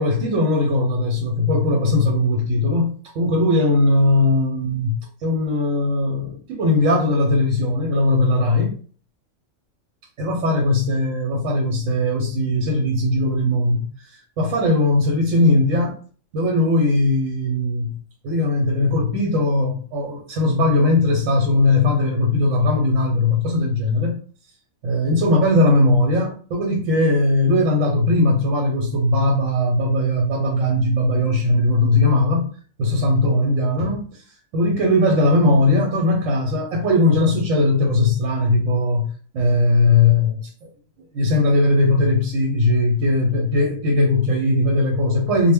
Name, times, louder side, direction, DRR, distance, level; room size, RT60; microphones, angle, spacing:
voice 1, 0.0-2.9 3.1-8.7 10.2-16.0 16.3-17.9 18.2-24.1 24.8-32.5 32.8-34.2 34.5-39.1 39.3-40.7 41.1-45.5, left 2 dB, 85° right, 1.0 m, -19 dB
2.1 x 2.1 x 3.3 m
omnidirectional pair, 1.3 m